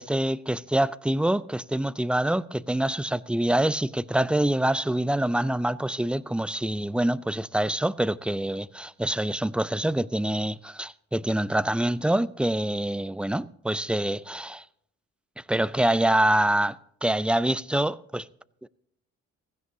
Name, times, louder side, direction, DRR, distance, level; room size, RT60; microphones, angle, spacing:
voice 1, 0.0-14.6 15.5-18.3, right 1 dB, 5° right, 0.4 m, -25 dB
16.5 x 15.5 x 2.7 m
cardioid pair, 90°, 30 cm